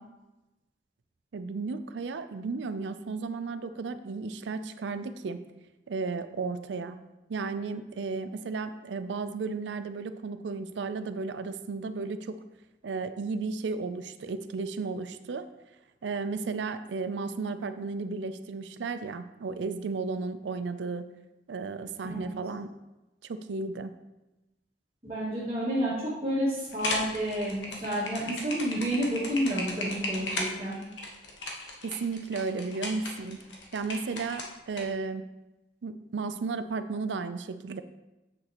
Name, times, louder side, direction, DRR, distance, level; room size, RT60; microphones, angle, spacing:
voice 1, 1.3-5.4 5.9-7.0 7.3-12.3 12.8-15.5 16.0-21.1 21.5-22.7 23.2-23.9 31.8-33.4 33.7-35.2 35.8-37.8, right 4 dB, 85° right, 11 dB, 0.4 m, -34 dB
voice 2, 25.0-30.8, equal, 30° right, -11 dB, 1.9 m, -30 dB
sound 1, 26.7-34.8, left 2 dB, 85° left, 1.2 m, -36 dB
7.7 x 6.4 x 3.0 m, 1.0 s
head